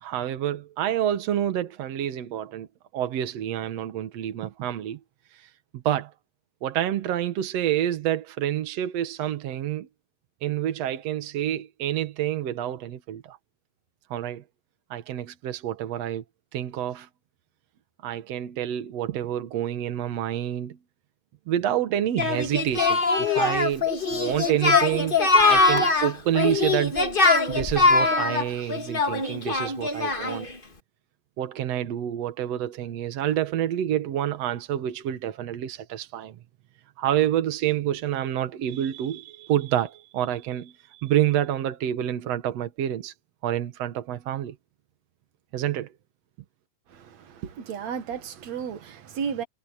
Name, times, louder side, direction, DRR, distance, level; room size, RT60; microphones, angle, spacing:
voice 1, 0.0-2.7 2.9-5.0 5.8-6.1 6.6-9.9 10.4-13.4 14.1-14.4 14.9-16.2 16.5-17.1 18.0-20.8 21.5-25.2 25.4-27.0 27.5-30.5 31.4-36.3 37.0-43.1 43.4-44.5 45.5-45.9, right 11 dB, 70° right, 1.5 m, -28 dB
Singing, 22.2-30.5, left 3 dB, 70° left, 0.5 m, -22 dB
voice 2, 46.9-49.4, right 7 dB, 55° right, 2.2 m, -33 dB
omnidirectional pair, 4.7 m